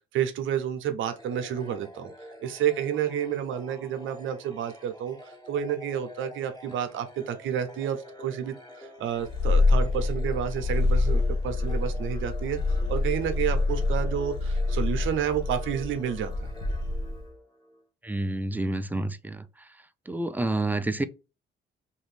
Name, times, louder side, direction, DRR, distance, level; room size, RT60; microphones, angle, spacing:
voice 1, 0.1-2.1 2.4-16.5, right 9 dB, 80° right, 0.7 m, -30 dB
sound 1, 1.1-17.8, equal, 20° left, 1.3 m, -47 dB
Purr, 9.2-17.3, left 3 dB, 80° left, 0.8 m, -26 dB
voice 2, 18.0-19.4 20.1-21.0, right 2 dB, 10° right, 0.4 m, -28 dB
3.0 x 2.5 x 3.3 m
cardioid pair, 90°, 20 cm